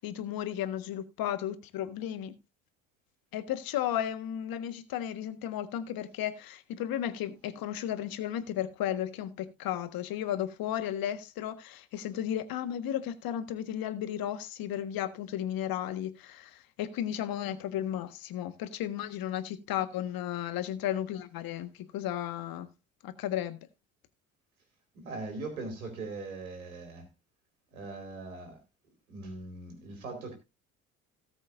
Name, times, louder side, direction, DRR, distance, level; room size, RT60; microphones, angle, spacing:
voice 1, 0.0-2.3 3.3-22.7 23.0-23.6, left 11 dB, 55° left, 1.6 m, -34 dB
voice 2, 24.9-27.1 27.7-28.6 29.1-30.3, right 3 dB, 85° right, 4.2 m, -40 dB
18.5 x 7.8 x 2.6 m
hypercardioid pair, 55°, 41 cm